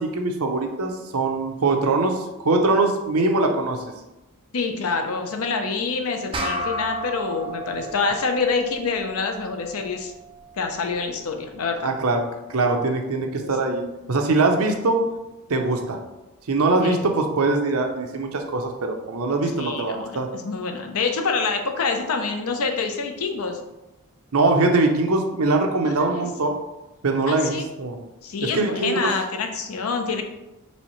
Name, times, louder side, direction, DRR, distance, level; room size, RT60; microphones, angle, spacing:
voice 1, 0.0-3.8 11.8-12.2 12.5-13.8 14.1-15.0 15.5-16.0 16.5-20.3 24.3-26.5 27.0-28.0 28.4-29.1, right 3 dB, 75° right, 4 dB, 0.6 m, -22 dB
voice 2, 4.5-10.1 10.6-11.9 13.4-13.5 16.8-17.0 19.5-23.6 25.8-26.3 27.3-27.6 28.2-30.2, left 4 dB, 75° left, 5 dB, 0.6 m, -26 dB
sound 1, 6.3-11.1, right 1 dB, 25° right, 0.5 m, -33 dB
4.2 x 3.5 x 3.0 m, 0.97 s
head